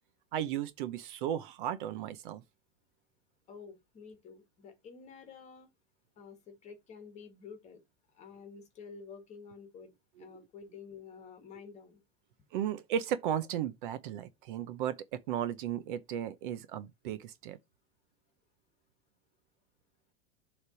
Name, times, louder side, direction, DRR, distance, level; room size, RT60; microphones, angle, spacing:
voice 1, 0.3-2.4 12.5-17.6, right 10 dB, 50° right, 0.7 m, -35 dB
voice 2, 3.5-5.7 6.2-7.8 8.1-9.9 10.2-12.0, left 5 dB, 20° left, 1.6 m, -50 dB
7.1 x 3.3 x 5.0 m
supercardioid pair, 180°, 33 cm